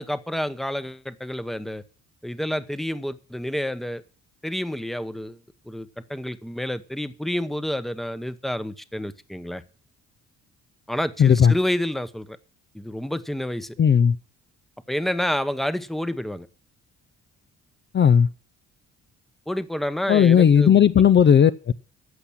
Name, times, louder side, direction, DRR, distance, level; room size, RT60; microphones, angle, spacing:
voice 1, 0.0-1.8 2.2-4.0 4.4-5.4 5.7-9.6 10.9-12.4 12.7-13.8 14.9-16.5 19.5-20.8, left 1 dB, ahead, 0.9 m, -29 dB
voice 2, 11.2-11.5 13.8-14.2 17.9-18.3 20.1-21.5, left 8 dB, 40° left, 0.5 m, -15 dB
14.5 x 5.9 x 8.6 m
cardioid pair, 90°, 30 cm